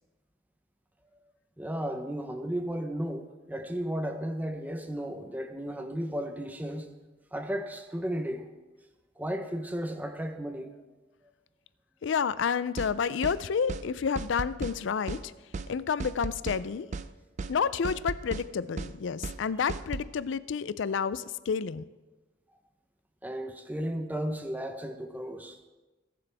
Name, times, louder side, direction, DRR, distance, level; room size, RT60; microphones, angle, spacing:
voice 1, 1.6-6.9 7.3-8.5 9.2-10.8 23.2-25.6, equal, 10° right, 6 dB, 0.7 m, -34 dB
voice 2, 12.0-15.3 15.7-16.9 17.5-21.8, left 6 dB, 65° left, 16 dB, 0.4 m, -30 dB
sound 1, 12.8-12.9 13.2-13.4 13.7-13.9 14.2-14.8 15.1-15.2 15.5-15.7 16.0-16.6 16.9-17.1 17.4-17.5 17.8-18.5 18.8-18.9 19.2-19.4 19.7-20.1, right 3 dB, 35° right, 0.4 m, -35 dB
20.0 x 7.7 x 3.4 m, 1.2 s
head